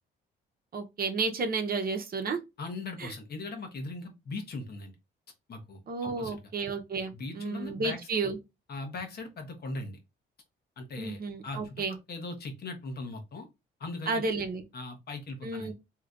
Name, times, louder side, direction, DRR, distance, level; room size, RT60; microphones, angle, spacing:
voice 1, 0.7-2.4 3.0-3.1 5.9-8.4 11.0-12.0 14.1-14.6 15.4-15.7, right 4 dB, 50° right, 0.8 m, -32 dB
voice 2, 2.6-5.0 5.5-6.4 7.1-8.0 8.7-10.0 10.8-13.5 13.8-14.2 14.7-15.7, left 2 dB, 55° left, 1.0 m, -39 dB
3.2 x 2.8 x 2.5 m
cardioid pair, 90°, 20 cm